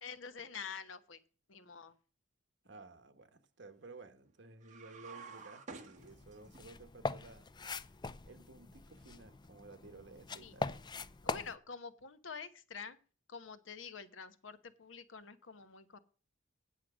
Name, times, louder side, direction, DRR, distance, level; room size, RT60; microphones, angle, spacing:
voice 1, 0.0-1.2 1.5-1.9 10.4-10.5 11.2-13.0 13.3-16.0, left 6 dB, 80° left, 1.0 m, -47 dB
voice 2, 2.6-7.5 8.2-10.7, right 3 dB, 65° right, 1.3 m, -55 dB
sound 1, 4.6-6.6, right 5 dB, 40° right, 1.5 m, -50 dB
sound 2, 6.0-11.6, left 3 dB, 25° left, 0.4 m, -42 dB
9.3 x 7.6 x 6.2 m
head